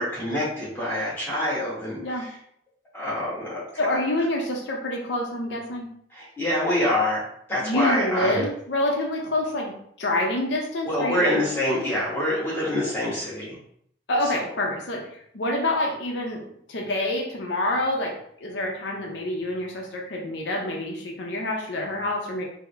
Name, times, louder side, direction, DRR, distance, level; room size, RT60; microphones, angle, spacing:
voice 1, 0.0-2.3 2.9-4.0 6.1-8.5 10.9-13.6 14.3-14.4, left 1 dB, 10° left, -9 dB, 1.2 m, -26 dB
voice 2, 3.8-5.9 7.6-9.7 10.0-11.4 14.1-18.2 18.4-22.4, left 1 dB, 75° left, 0 dB, 0.6 m, -27 dB
3.5 x 2.0 x 3.2 m, 0.68 s
head